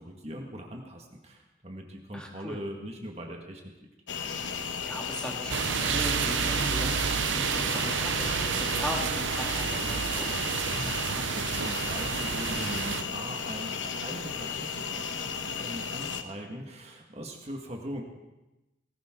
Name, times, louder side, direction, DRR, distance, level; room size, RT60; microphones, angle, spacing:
voice 1, 0.0-3.9 10.6-18.0, equal, 35° right, 1 dB, 1.8 m, -41 dB
voice 2, 2.1-2.6 4.3-10.4, equal, 5° left, -1 dB, 2.0 m, -39 dB
sound 1, 4.1-16.2, left 6 dB, 85° left, 1.1 m, -35 dB
Bowed string instrument, 5.4-10.9, left 1 dB, 25° left, 3.8 m, -43 dB
sound 2, 5.5-13.0, right 8 dB, 85° right, 0.5 m, -30 dB
19.5 x 16.5 x 3.8 m, 1.0 s
head